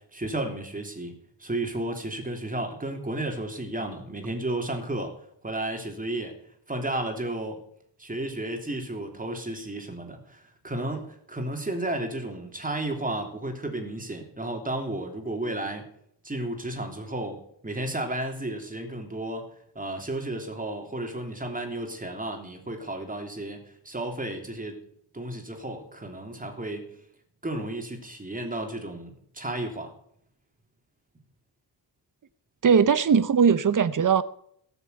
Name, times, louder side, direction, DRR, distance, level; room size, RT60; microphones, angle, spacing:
voice 1, 0.1-1.1 1.4-5.1 5.4-6.3 6.7-7.6 8.0-15.9 16.2-24.8 25.1-26.9 27.4-29.9, right 1 dB, 20° right, 3.2 m, -33 dB
voice 2, 32.6-34.2, right 6 dB, 45° right, 0.9 m, -20 dB
18.0 x 7.0 x 8.1 m
wide cardioid pair, 110°, 44 cm